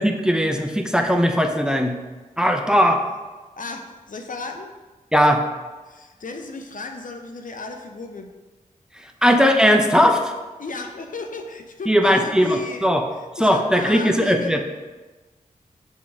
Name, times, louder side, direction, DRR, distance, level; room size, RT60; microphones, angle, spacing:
voice 1, 0.0-2.0 2.4-3.0 5.1-5.4 9.2-10.3 11.9-13.0 13.4-14.6, equal, 5° right, 4 dB, 0.7 m, -18 dB
voice 2, 3.6-4.7 5.9-8.3 10.6-12.9 13.4-14.6, left 3 dB, 65° left, 4 dB, 0.7 m, -34 dB
6.3 x 3.7 x 4.8 m, 1.2 s
cardioid pair, 40°, 15 cm